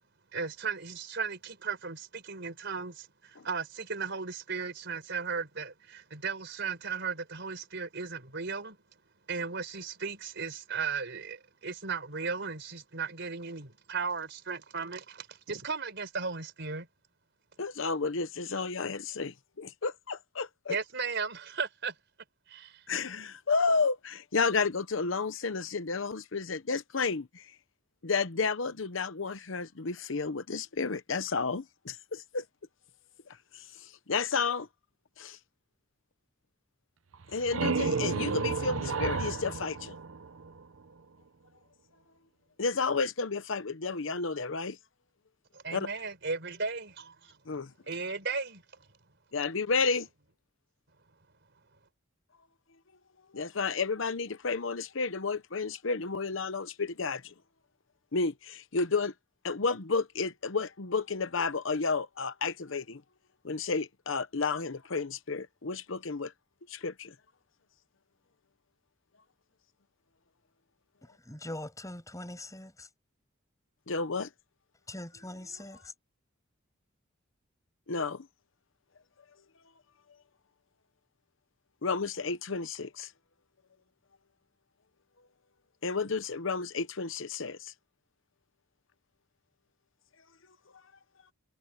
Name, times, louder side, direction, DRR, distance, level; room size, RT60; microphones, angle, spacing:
voice 1, 0.3-8.8 9.3-16.9 20.7-21.9 22.5-22.8 45.5-47.4 47.9-48.6, right 5 dB, 60° right, 4.4 m, -36 dB
voice 2, 17.6-20.8 22.9-27.4 28.0-32.4 33.5-34.7 35.2-35.4 37.3-39.9 42.6-44.8 45.7-45.9 47.5-47.7 49.3-50.1 53.3-57.3 58.1-59.1 59.4-63.0 63.4-66.3 66.7-67.1 73.9-74.3 77.9-78.3 81.8-83.1 85.8-87.7, left 4 dB, 75° left, 0.9 m, -31 dB
sound 1, 37.1-40.8, right 4 dB, 90° right, 0.8 m, -32 dB
voice 3, 71.2-72.9 74.9-75.9, left 1 dB, 15° left, 6.3 m, -42 dB
head